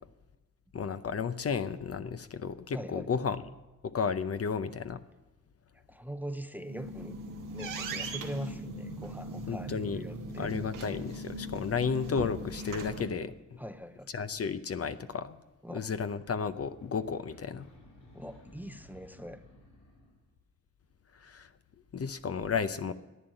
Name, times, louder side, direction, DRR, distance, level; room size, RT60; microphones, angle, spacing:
voice 1, 0.7-3.4 3.9-5.0 9.5-10.0 10.4-13.6 14.1-15.4 15.7-17.7 21.1-21.5 21.9-22.9, left 6 dB, 50° left, 11 dB, 0.7 m, -33 dB
voice 2, 2.7-3.2 5.9-7.2 7.5-10.5 13.6-14.1 15.6-15.9 18.1-19.4, right 1 dB, 5° right, 11 dB, 0.7 m, -42 dB
sound 1, 6.5-13.0, right 1 dB, 85° right, 1.3 m, -39 dB
sound 2, 16.5-20.3, left 1 dB, 90° left, 5.1 m, -56 dB
11.0 x 8.8 x 8.9 m, 1.1 s
cardioid pair, 65°, 32 cm